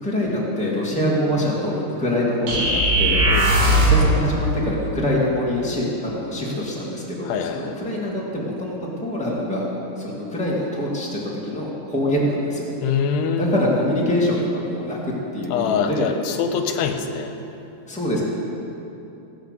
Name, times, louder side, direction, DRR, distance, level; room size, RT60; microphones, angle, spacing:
voice 1, 0.0-3.2 3.5-9.7 10.0-12.6 13.4-15.0 15.3-16.1 17.9-18.2, left 1 dB, 5° left, -6 dB, 0.7 m, -24 dB
sound 1, 2.5-4.1, right 1 dB, 90° right, 4.6 m, -17 dB
voice 2, 3.3-3.8 7.3-7.8 12.8-13.6 15.5-17.3, left 6 dB, 90° left, 6 dB, 2.8 m, -24 dB
16.5 x 8.7 x 6.7 m, 2.9 s
omnidirectional pair, 4.8 m